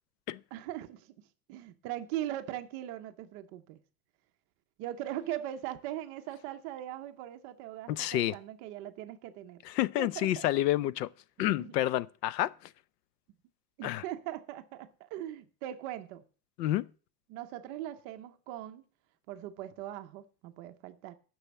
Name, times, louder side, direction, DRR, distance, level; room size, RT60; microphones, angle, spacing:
voice 1, 0.5-1.1 1.5-3.8 4.8-9.6 10.0-10.5 11.4-11.7 13.8-16.2 17.3-18.8 19.3-21.2, right 13 dB, 30° right, 0.5 m, -40 dB
voice 2, 7.9-8.3 9.7-11.1 11.4-12.7 13.8-14.0 16.6-16.9, left 14 dB, 80° left, 0.7 m, -29 dB
10.0 x 6.2 x 8.3 m
supercardioid pair, 175°, 47 cm